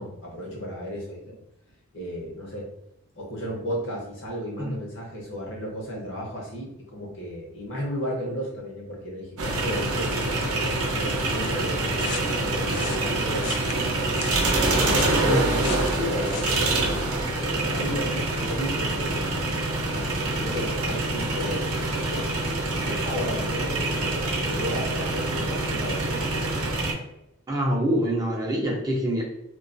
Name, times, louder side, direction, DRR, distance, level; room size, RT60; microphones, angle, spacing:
voice 1, 0.0-1.4 1.9-2.7 3.2-10.3 10.9-14.1 14.8-17.0 17.4-21.6 21.9-22.3 22.8-26.4, equal, 60° left, -2 dB, 0.8 m, -34 dB
sound 1, 9.4-26.9, right 2 dB, 80° right, 0.6 m, -26 dB
sound 2, 12.0-16.7, left 7 dB, 80° left, 0.3 m, -37 dB
voice 2, 15.2-15.6 27.5-29.2, equal, 15° right, -2 dB, 0.3 m, -25 dB
2.3 x 2.3 x 2.4 m, 0.85 s
head